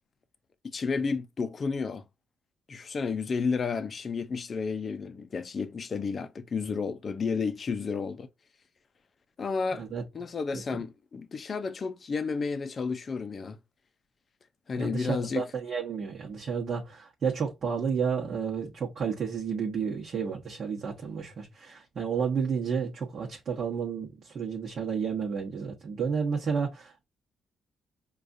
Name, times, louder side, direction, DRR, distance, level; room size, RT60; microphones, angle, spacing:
voice 1, 0.6-2.0 2.7-8.3 9.4-9.8 10.1-13.6 14.7-15.5, left 5 dB, 40° left, 0.5 m, -31 dB
voice 2, 9.7-10.0 10.5-10.8 14.8-27.0, right 6 dB, 55° right, 1.0 m, -31 dB
4.8 x 2.4 x 2.5 m
cardioid pair, 90°, 0 cm